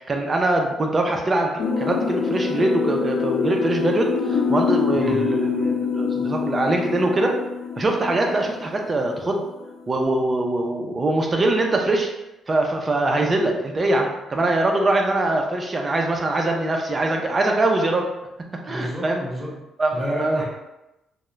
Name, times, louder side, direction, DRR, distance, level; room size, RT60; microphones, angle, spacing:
voice 1, 0.0-1.5 1.8-7.4 7.8-9.4 9.9-12.1 12.5-18.1 18.6-19.2 19.8-20.4, right 2 dB, 30° right, 2 dB, 0.4 m, -22 dB
sound 1, 1.6-9.3 9.6-9.7, left 5 dB, 70° left, 0.6 m, -25 dB
voice 2, 18.7-19.6 19.9-20.4, left 1 dB, 5° left, -5 dB, 0.9 m, -31 dB
2.3 x 2.0 x 3.0 m, 0.94 s
cardioid pair, 90°, 0 cm